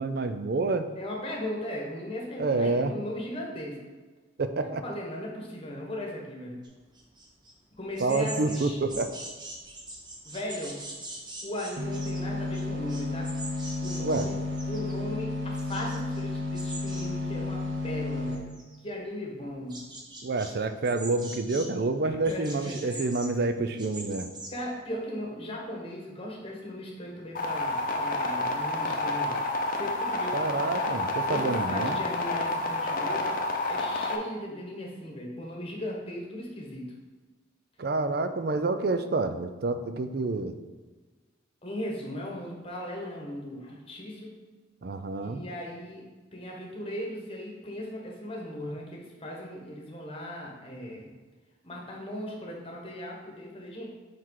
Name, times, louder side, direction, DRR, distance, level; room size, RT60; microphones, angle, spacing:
voice 1, 0.0-0.9 2.4-2.9 4.4-4.8 8.0-9.1 14.0-14.3 20.2-24.3 30.3-32.0 37.8-40.6 44.8-45.4, right 3 dB, 50° right, 9 dB, 0.4 m, -28 dB
voice 2, 1.0-3.8 4.6-6.6 7.8-9.0 10.2-10.8 11.4-13.3 13.8-14.4 14.7-18.5 18.8-19.9 22.0-23.0 24.5-29.4 29.8-30.4 31.3-33.3 33.7-36.9 41.6-44.3 45.2-46.0 46.3-51.1 51.6-53.9, left 1 dB, 30° left, -1 dB, 1.2 m, -37 dB
sound 1, 6.6-7.5 7.8-14.9 15.2-16.2 16.5-17.1 17.4-18.0 18.3-18.9 19.4-20.5 20.8-21.7 22.2-24.5, right 2 dB, 20° right, 0.9 m, -43 dB
sound 2, 11.8-18.4, left 3 dB, 85° right, 0.9 m, -32 dB
sound 3, 27.3-34.2, left 2 dB, 45° left, 0.7 m, -29 dB
5.9 x 4.5 x 4.7 m, 1.3 s
head